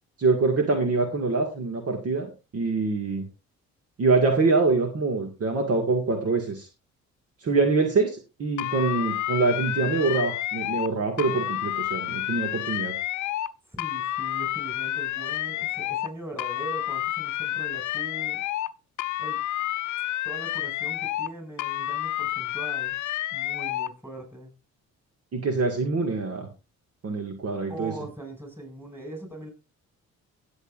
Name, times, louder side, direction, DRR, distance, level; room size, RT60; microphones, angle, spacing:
voice 1, 0.2-3.2 4.0-6.7 7.4-12.9 25.3-26.5 27.0-27.9, right 3 dB, 50° right, 2.0 m, -25 dB
sound 1, 8.6-10.9 11.2-13.5 13.8-16.1 16.4-18.7 19.0-21.3 21.6-23.9, left 14 dB, 75° left, 0.6 m, -30 dB
voice 2, 13.7-18.4 19.2-19.4 20.2-23.0 23.3-24.5 27.7-29.5, right 1 dB, 10° right, 6.2 m, -40 dB
17.0 x 8.1 x 2.6 m
cardioid pair, 90°, 30 cm